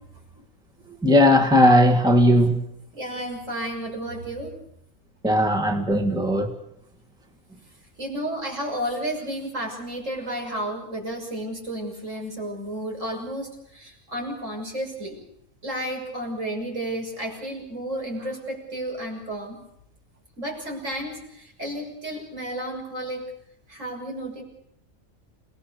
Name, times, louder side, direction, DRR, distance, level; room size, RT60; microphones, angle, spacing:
voice 1, 1.0-2.6 5.2-6.5, equal, 5° right, 1.8 m, -17 dB
voice 2, 2.9-4.5 8.0-15.2 15.6-19.6 20.4-23.2 23.7-24.4, right 1 dB, 65° right, 6.7 m, -32 dB
28.5 x 18.5 x 6.8 m
omnidirectional pair, 1.4 m